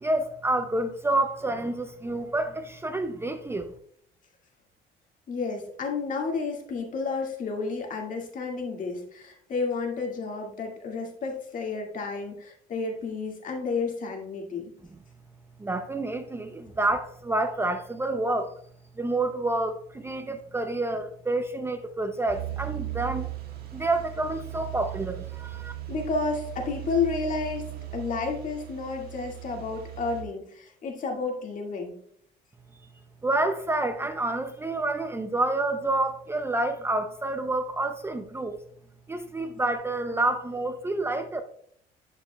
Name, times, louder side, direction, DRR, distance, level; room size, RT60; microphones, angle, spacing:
voice 1, 0.0-3.7 15.6-18.5 19.0-23.3 23.7-25.7 33.2-38.6 39.1-41.4, right 2 dB, 15° right, 0.5 m, -28 dB
voice 2, 5.3-14.7 25.9-27.6 27.9-32.0, left 4 dB, 50° left, 1.9 m, -31 dB
sound 1, 22.3-30.2, right 15 dB, 65° right, 1.4 m, -38 dB
11.0 x 5.1 x 2.2 m
cardioid pair, 110°, 17 cm